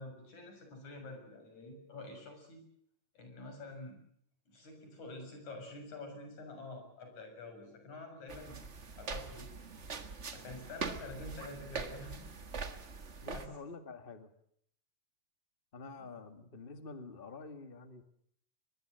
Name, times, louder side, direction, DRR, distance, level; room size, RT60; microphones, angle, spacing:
voice 1, 0.0-2.6 3.1-4.0 4.5-8.6 9.0-9.5 10.3-12.3 13.3-13.5, left 2 dB, 60° left, 5 dB, 7.9 m, -47 dB
sound 1, 8.3-13.5, right 4 dB, 40° right, 1.0 m, -43 dB
voice 2, 13.2-14.3 15.7-18.0, left 4 dB, 25° left, 9 dB, 1.3 m, -48 dB
23.5 x 22.0 x 7.8 m, 0.69 s
omnidirectional pair, 3.7 m